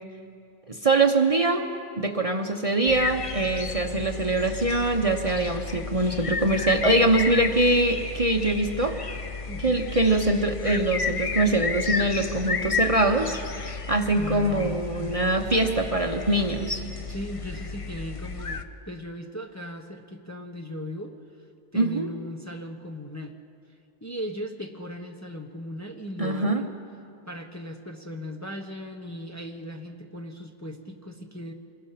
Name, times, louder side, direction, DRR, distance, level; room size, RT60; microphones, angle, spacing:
voice 1, 0.7-1.7 2.0-9.0 9.6-16.8 21.7-22.1 26.2-26.6, right 2 dB, 30° right, 4 dB, 1.0 m, -23 dB
sound 1, 2.9-18.6, left 4 dB, 35° left, 0.8 m, -32 dB
voice 2, 9.5-9.9 14.1-15.1 17.1-21.1 21.7-23.4 24.0-26.8 27.3-31.5, left 1 dB, 15° left, 2 dB, 1.0 m, -37 dB
27.0 x 21.0 x 5.9 m, 2.7 s
omnidirectional pair, 1.2 m